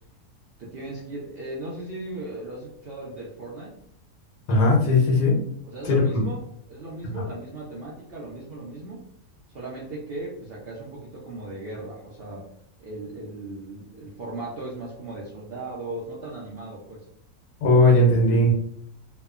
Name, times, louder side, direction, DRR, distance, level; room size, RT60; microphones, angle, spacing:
voice 1, 0.6-3.8 5.6-6.4 6.7-9.0 9.5-12.5 12.8-17.1, right 2 dB, 75° right, -4 dB, 0.5 m, -37 dB
voice 2, 4.5-5.4 5.8-6.2 7.1-7.2 17.6-18.5, left 1 dB, 80° left, -2 dB, 1.2 m, -18 dB
3.0 x 2.1 x 2.3 m, 0.66 s
omnidirectional pair, 1.6 m